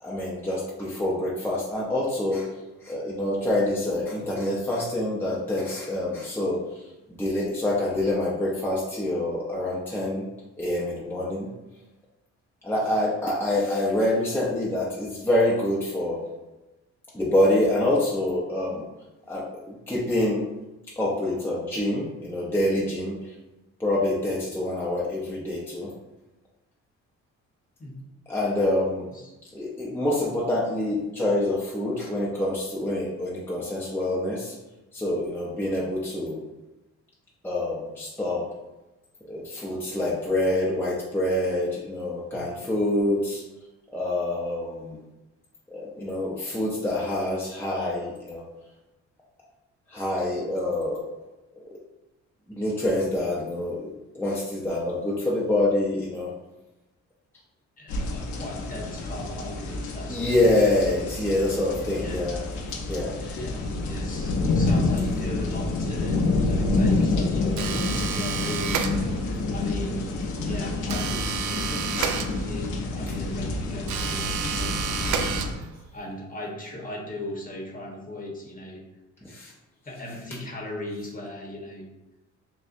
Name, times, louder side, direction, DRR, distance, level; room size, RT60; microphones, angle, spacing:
voice 1, 0.0-2.5 2.8-6.6 7.1-10.3 10.6-11.5 12.6-16.2 17.1-18.8 19.3-20.5 21.0-23.2 23.8-25.9 28.3-29.1 29.5-34.5 34.9-36.4 37.4-38.5 39.3-43.4 43.9-45.0 45.7-48.4 49.9-51.1 52.5-56.3 60.1-63.4 79.2-79.5, left 1 dB, 5° left, -6 dB, 0.8 m, -26 dB
voice 2, 57.8-60.3 61.9-62.3 63.3-68.9 69.5-70.1 70.4-75.4 75.9-78.8 79.8-81.9, left 1 dB, 30° left, -1 dB, 1.1 m, -38 dB
sound 1, 57.9-75.5, left 2 dB, 80° left, 0.8 m, -28 dB
sound 2, 67.6-69.4 70.9-72.8 73.9-75.9, right 8 dB, 80° right, 0.5 m, -30 dB
6.6 x 2.3 x 2.6 m, 1.0 s
cardioid pair, 90°, 30 cm